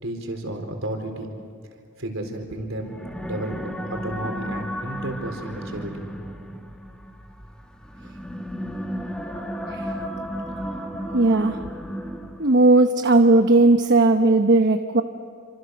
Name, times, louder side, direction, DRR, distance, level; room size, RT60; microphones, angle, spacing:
voice 1, 0.0-1.3 2.0-2.9 3.2-3.5 3.9-6.0, right 1 dB, 70° right, 4 dB, 4.3 m, -32 dB
sound 1, 2.8-12.6, equal, 5° left, 1.4 m, -34 dB
voice 2, 11.1-11.6 12.4-15.0, right 2 dB, 55° right, 6 dB, 1.0 m, -17 dB
29.0 x 26.0 x 6.6 m, 2.3 s
head